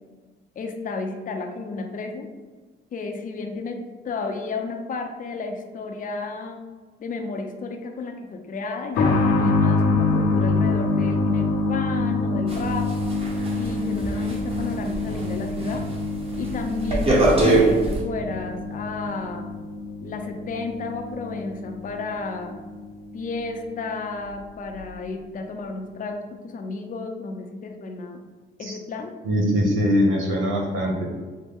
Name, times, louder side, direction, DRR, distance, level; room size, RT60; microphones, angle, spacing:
voice 1, 0.6-2.3 2.9-6.6 7.0-12.9 13.5-15.9 16.4-19.5 20.0-22.6 23.1-28.2 28.6-29.1, left 3 dB, 45° left, 3 dB, 0.6 m, -32 dB
sound 1, 8.9-23.4 23.6-23.7 24.7-24.8, left 3 dB, 90° left, 0.9 m, -26 dB
sound 2, 12.5-15.3 15.6-15.9 16.3-18.0, right 2 dB, 30° right, 1.2 m, -22 dB
voice 2, 29.2-31.0, equal, 85° right, 0 dB, 1.1 m, -22 dB
6.4 x 2.1 x 3.5 m, 1.4 s
cardioid pair, 90°, 20 cm